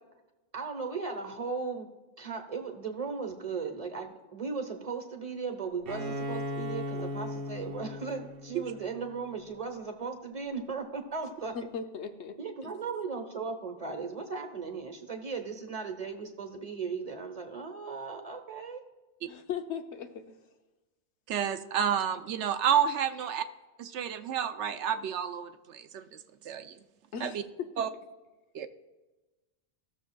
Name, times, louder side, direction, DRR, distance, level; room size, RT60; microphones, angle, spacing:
voice 1, 0.5-1.9 2.2-11.5 12.4-18.8, right 5 dB, 35° right, 4 dB, 1.1 m, -37 dB
Bowed string instrument, 5.9-9.5, left 1 dB, 55° right, 0.9 m, -37 dB
voice 2, 11.5-12.4 12.6-12.7 19.3-20.4 27.1-27.7, left 7 dB, 70° left, 7 dB, 1.0 m, -38 dB
voice 3, 21.3-23.4 23.8-26.8 27.2-27.4 27.8-27.9 28.5-28.7, right 8 dB, 75° right, 9 dB, 0.9 m, -30 dB
15.5 x 6.8 x 2.3 m, 1.2 s
omnidirectional pair, 1.2 m